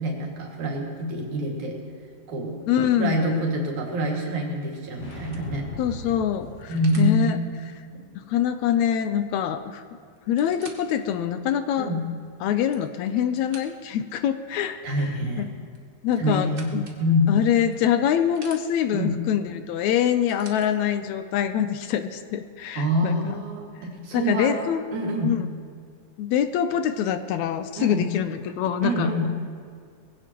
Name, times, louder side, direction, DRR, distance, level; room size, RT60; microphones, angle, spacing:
voice 1, 0.0-1.8 2.3-2.6 2.9-5.7 6.7-7.3 7.9-8.0 11.8-12.0 14.8-15.5 16.2-17.3 18.9-19.1 22.8-24.6 24.9-25.3 27.8-28.1 28.8-29.3, equal, 75° right, -2 dB, 3.6 m, -26 dB
voice 2, 2.7-3.4 5.8-7.4 8.2-9.8 10.3-11.9 12.4-15.1 15.4-15.5 16.0-16.9 17.3-23.1 24.1-24.8 25.2-25.4 26.2-29.3, left 9 dB, 80° left, 9 dB, 1.9 m, -25 dB
sound 1, 4.8-7.1, equal, 50° left, 4.7 m, -39 dB
sound 2, 5.1-7.2 9.2-9.3 9.5-9.6 10.2-11.0 11.6-11.7 12.4-14.0 15.7-17.0 17.7-18.6 19.8-20.7 21.6-21.7, right 2 dB, 50° right, 0.6 m, -48 dB
21.5 x 16.5 x 3.0 m, 2.2 s
omnidirectional pair, 3.4 m